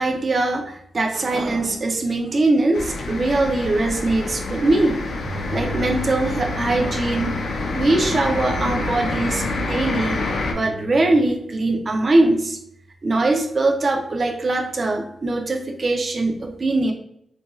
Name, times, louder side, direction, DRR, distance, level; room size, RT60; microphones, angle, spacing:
voice 1, 0.0-5.0 5.5-7.4 7.7-10.2 10.5-12.6 13.0-16.9, right 2 dB, 35° right, 3 dB, 0.4 m, -21 dB
sound 1, 2.7-10.5, left 2 dB, 70° left, 0.5 m, -27 dB
sound 2, 5.2-11.2, equal, 60° right, 0.7 m, -36 dB
2.5 x 2.2 x 2.9 m, 0.72 s
wide cardioid pair, 140°, 0 cm